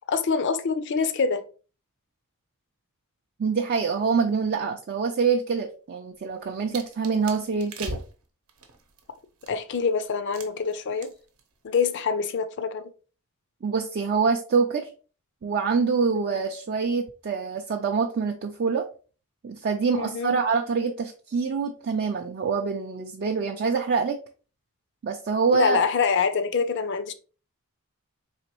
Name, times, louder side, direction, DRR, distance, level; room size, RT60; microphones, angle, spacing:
voice 1, 0.1-1.5 9.5-11.1 11.6-12.9 19.9-20.4 25.5-27.1, left 5 dB, 55° left, 0.4 m, -25 dB
voice 2, 3.4-8.0 13.6-14.9 15.4-18.8 19.4-24.2 25.0-25.8, right 5 dB, 45° right, 0.4 m, -25 dB
sound 1, 6.1-9.8 10.3-10.7 11.0-11.4 11.7-11.9, right 3 dB, 70° right, 0.8 m, -40 dB
4.2 x 2.9 x 2.9 m
head